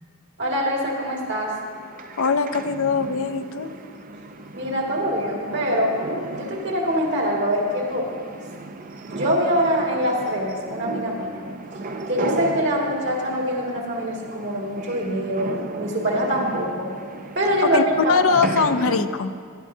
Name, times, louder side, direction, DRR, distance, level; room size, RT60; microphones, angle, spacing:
voice 1, 0.4-1.5 4.5-6.0 6.3-8.4 9.1-11.4 12.1-15.5 15.8-16.9 17.4-18.2, equal, 55° right, -2 dB, 2.1 m, -24 dB
sound 1, 0.9-19.1, right 3 dB, 40° right, 0.5 m, -35 dB
voice 2, 2.2-3.7 17.6-19.3, left 5 dB, 65° left, 9 dB, 0.5 m, -22 dB
18.5 x 11.5 x 2.7 m, 2.1 s
head